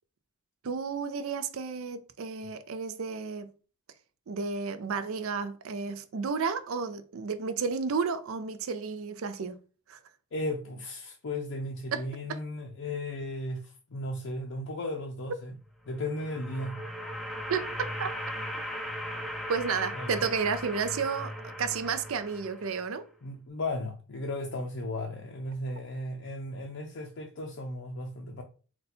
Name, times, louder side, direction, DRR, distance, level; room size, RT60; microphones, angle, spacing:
voice 1, 0.6-3.5 4.3-9.6 9.9-10.0 11.9-12.0 12.3-12.4 17.5-18.1 19.5-23.0, right 5 dB, 65° right, 0.5 m, -32 dB
voice 2, 10.3-15.6 15.9-16.8 19.9-20.1 23.2-28.4, left 1 dB, 60° left, 0.5 m, -35 dB
sound 1, 15.8-23.0, equal, ahead, 0.4 m, -38 dB
4.0 x 2.2 x 4.1 m
head